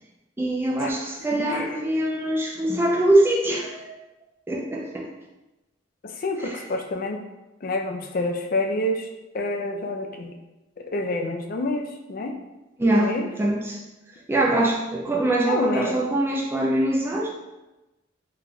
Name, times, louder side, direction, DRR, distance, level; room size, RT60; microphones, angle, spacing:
voice 1, 0.4-3.9 4.5-5.1 6.4-6.6 12.8-13.8 14.3-17.3, right 1 dB, 10° right, -2 dB, 0.4 m, -23 dB
voice 2, 1.4-1.8 6.0-7.2 7.6-9.1 9.3-10.4 10.8-12.3 12.9-13.3 15.5-16.0, left 2 dB, 50° left, 3 dB, 0.4 m, -28 dB
3.9 x 3.2 x 2.3 m, 1.0 s
head